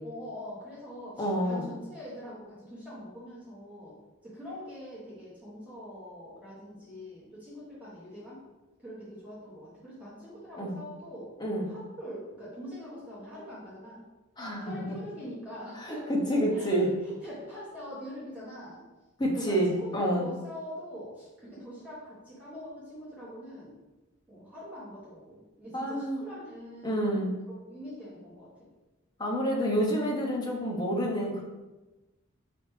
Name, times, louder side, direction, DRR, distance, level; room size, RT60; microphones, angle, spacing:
voice 1, 0.0-8.4 8.8-11.4 11.7-14.0 14.6-18.8 19.3-23.8 24.3-28.5, equal, 5° right, -10 dB, 1.3 m, -44 dB
voice 2, 1.2-1.7 10.6-10.8 11.4-11.7 14.4-14.8 15.8-16.9 19.2-20.3 25.7-26.2 26.8-27.3 29.2-31.4, equal, 20° left, -2 dB, 0.8 m, -28 dB
4.8 x 3.4 x 3.2 m, 1.1 s
head